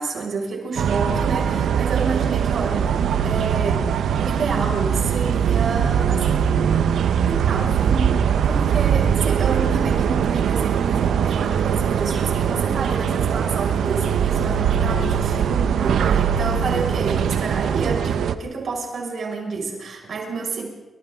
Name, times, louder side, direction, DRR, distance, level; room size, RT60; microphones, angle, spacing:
voice 1, 0.0-2.9 3.2-3.9 4.2-6.3 7.3-20.7, right 4 dB, 60° right, 0 dB, 5.9 m, -29 dB
Ambience my balcony birds little wind planes, 0.8-18.3, right 8 dB, 85° right, 1.0 m, -21 dB
28.5 x 25.5 x 3.8 m, 1.1 s
wide cardioid pair, 145°, 0 cm